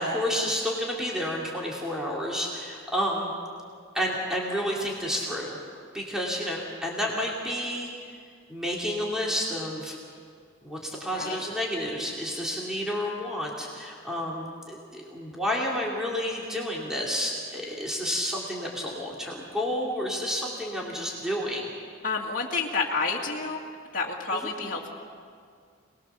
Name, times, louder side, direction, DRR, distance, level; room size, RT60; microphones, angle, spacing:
voice 1, 0.0-3.3 3.9-5.6 5.9-7.9 8.5-10.0 10.6-21.7 24.3-24.5, equal, 5° right, -3 dB, 2.8 m, -30 dB
voice 2, 22.0-23.6 23.9-24.9, left 4 dB, 45° left, -4 dB, 2.2 m, -29 dB
27.5 x 20.0 x 7.0 m, 2.1 s
head